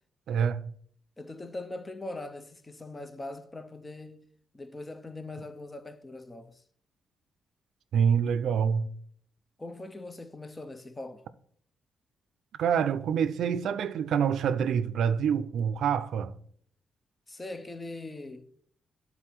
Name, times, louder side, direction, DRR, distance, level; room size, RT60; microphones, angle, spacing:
voice 1, 0.3-0.7 7.9-8.9 12.6-16.3, right 7 dB, 70° right, 0.5 m, -26 dB
voice 2, 1.2-4.2 4.5-6.6 9.6-11.2 17.3-18.5, left 2 dB, 15° left, 0.6 m, -41 dB
12.0 x 4.1 x 4.5 m
wide cardioid pair, 160°, 0 cm